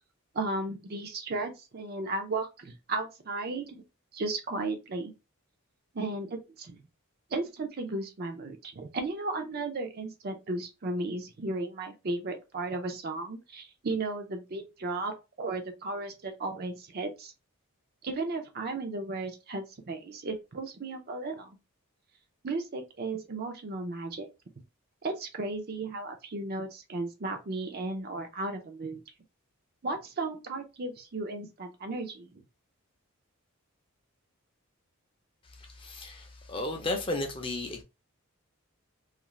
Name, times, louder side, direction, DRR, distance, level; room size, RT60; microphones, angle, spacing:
voice 1, 0.3-3.8 4.1-5.1 5.9-6.8 7.3-17.3 18.0-21.6 22.4-24.3 25.0-29.0 29.8-32.4, right 2 dB, 45° right, 0.5 m, -35 dB
voice 2, 35.8-37.8, left 2 dB, 25° left, 0.5 m, -33 dB
2.5 x 2.4 x 3.0 m
head